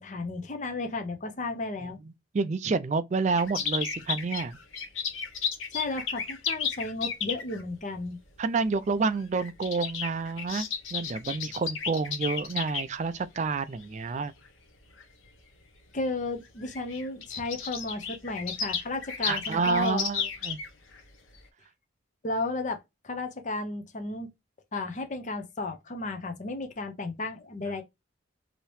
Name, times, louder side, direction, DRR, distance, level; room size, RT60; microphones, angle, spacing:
voice 1, 0.0-2.0 5.7-8.2 15.9-20.0 22.2-24.3 24.7-27.8, left 3 dB, 35° left, 0.6 m, -33 dB
voice 2, 2.3-4.6 8.4-14.3 19.2-20.6, right 4 dB, 35° right, 0.3 m, -29 dB
sound 1, 3.4-7.6 8.6-8.9 9.2-12.8 13.5-13.8 14.5-14.6 14.9-15.0 16.0-16.1 16.3-16.4 16.6-21.0 21.3-21.4, left 6 dB, 80° left, 0.8 m, -33 dB
2.9 x 2.8 x 3.0 m
head